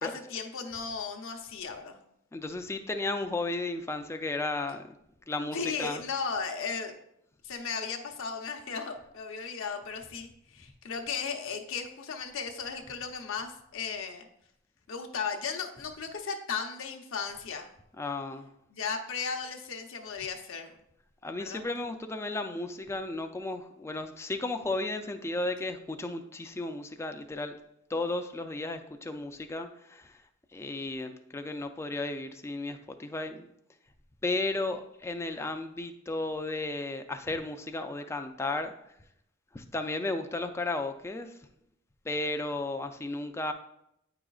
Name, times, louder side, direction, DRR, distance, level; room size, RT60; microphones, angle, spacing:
voice 1, 0.0-2.0 5.5-7.0 7.4-14.3 14.9-17.7 18.7-20.7 21.4-21.6, left 5 dB, 65° left, 3 dB, 0.7 m, -36 dB
voice 2, 2.3-5.0 5.3-6.0 18.0-18.5 21.2-27.6 27.9-30.2 30.5-33.5 34.2-38.7 39.5-41.4 42.1-43.5, left 2 dB, 15° left, 6 dB, 0.3 m, -34 dB
8.8 x 4.9 x 2.3 m, 0.78 s
head